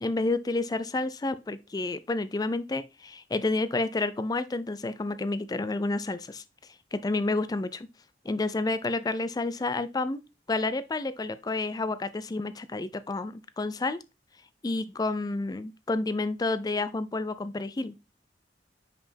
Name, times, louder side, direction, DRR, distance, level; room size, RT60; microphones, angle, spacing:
voice 1, 0.0-6.4 6.9-7.9 8.2-10.2 10.5-14.0 14.6-17.9, left 2 dB, 20° left, 0.4 m, -30 dB
5.5 x 5.1 x 3.3 m
head